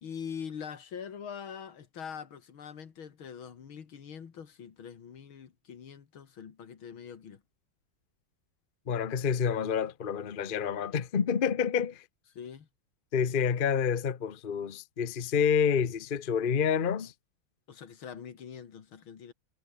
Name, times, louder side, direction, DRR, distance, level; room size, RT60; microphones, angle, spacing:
voice 1, 0.0-7.4 12.3-12.7 17.7-19.3, left 7 dB, 80° left, 2.8 m, -43 dB
voice 2, 8.9-12.0 13.1-17.1, left 7 dB, 35° left, 0.9 m, -28 dB
omnidirectional pair, 2.2 m